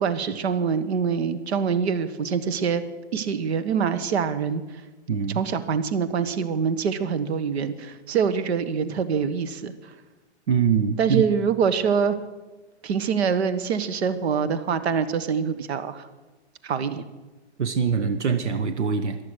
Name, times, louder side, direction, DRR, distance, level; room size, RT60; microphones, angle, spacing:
voice 1, 0.0-2.8 3.1-4.8 5.3-9.9 11.0-12.2 12.8-16.1 16.6-17.0, right 6 dB, 65° right, 13 dB, 1.3 m, -25 dB
voice 2, 5.1-5.4 10.5-11.2 17.6-19.2, right 6 dB, 80° right, 9 dB, 1.2 m, -23 dB
14.0 x 12.0 x 6.2 m, 1.2 s
hypercardioid pair, 135°, 34 cm